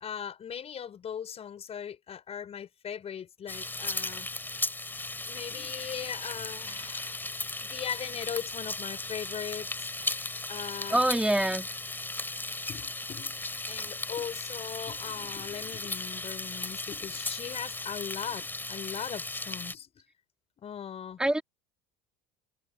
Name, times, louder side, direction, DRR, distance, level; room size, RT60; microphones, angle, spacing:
voice 1, 0.0-4.3 5.3-7.2 7.6-10.2 10.5-11.0 12.7-13.4 13.7-19.9 20.6-21.2, left 8 dB, 35° left, 6.0 m, -39 dB
sound 1, 3.5-19.8, left 2 dB, 10° left, 3.4 m, -36 dB
voice 2, 10.9-11.7 21.2-21.4, right 1 dB, 5° right, 3.5 m, -25 dB
supercardioid pair, 100°, 17 cm